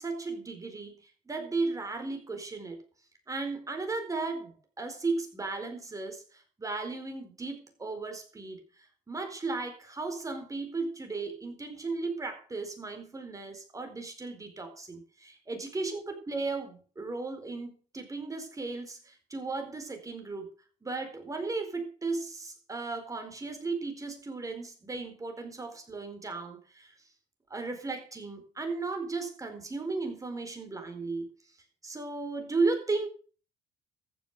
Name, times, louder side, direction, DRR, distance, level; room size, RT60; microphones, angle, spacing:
voice 1, 0.0-2.8 3.3-8.6 9.1-20.5 20.8-26.9 27.5-31.3 31.8-33.1, right 3 dB, 20° right, 5 dB, 4.3 m, -35 dB
14.5 x 7.4 x 6.7 m, 0.39 s
cardioid pair, 110°, 17 cm